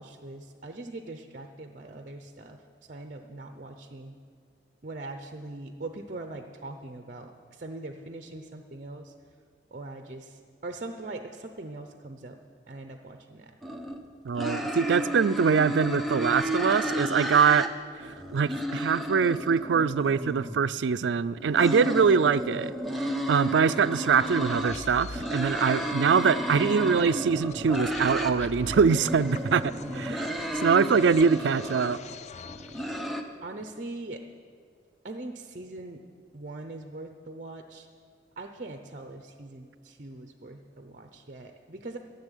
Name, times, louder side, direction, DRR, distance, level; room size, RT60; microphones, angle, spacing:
voice 1, 0.0-4.1 4.8-9.1 9.7-12.4 12.7-13.6 30.1-30.6 33.4-34.2 35.0-36.0 36.3-37.9 38.4-42.0, right 2 dB, 45° right, 6 dB, 0.7 m, -41 dB
sound 1, 13.6-14.0 14.4-17.7 18.0-20.6 21.3-24.8 25.1-28.3 28.7-32.0 32.5-33.2, equal, ahead, 0.9 m, -32 dB
voice 2, 14.2-17.7 18.0-30.2 30.6-32.0, right 6 dB, 85° right, 15 dB, 0.4 m, -23 dB
sound 2, 24.2-33.0, left 4 dB, 40° left, 0.4 m, -45 dB
15.0 x 7.0 x 9.9 m, 2.1 s
head